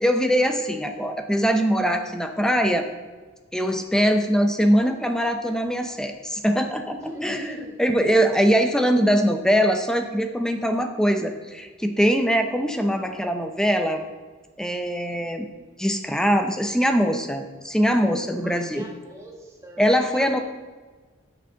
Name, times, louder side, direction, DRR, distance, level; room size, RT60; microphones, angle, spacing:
voice 1, 0.0-2.9 3.5-14.0 14.6-15.5 15.8-18.8 19.8-20.4, equal, 5° left, 6 dB, 0.6 m, -22 dB
voice 2, 7.0-7.8 18.4-19.8 20.1-20.4, equal, 15° right, -1 dB, 1.8 m, -40 dB
9.1 x 6.9 x 6.3 m, 1.4 s
head